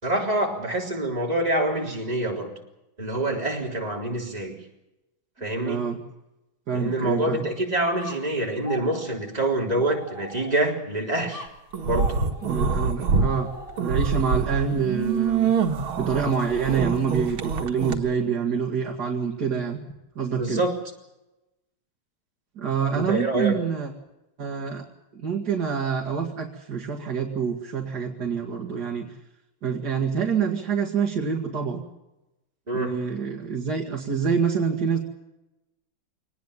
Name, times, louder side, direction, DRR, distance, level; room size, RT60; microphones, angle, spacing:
voice 1, 0.0-2.5 3.0-4.5 5.4-5.9 6.7-11.5 11.8-12.2 20.3-20.8 22.9-23.7 32.7-33.2, right 1 dB, 20° right, -1 dB, 3.8 m, -26 dB
voice 2, 5.6-6.0 6.7-7.5 12.4-13.5 13.8-15.5 16.0-19.8 20.2-20.6 22.6-23.9 24.4-24.8 25.1-29.1 29.6-31.8 32.7-35.0, right 6 dB, 50° right, 0 dB, 2.4 m, -26 dB
sound 1, 8.0-10.8 11.3-14.2, left 1 dB, 30° left, 3.4 m, -42 dB
sound 2, 11.7-13.3 13.7-17.9, right 5 dB, 80° right, 2.4 m, -25 dB
24.0 x 19.0 x 7.3 m, 0.96 s
omnidirectional pair, 2.2 m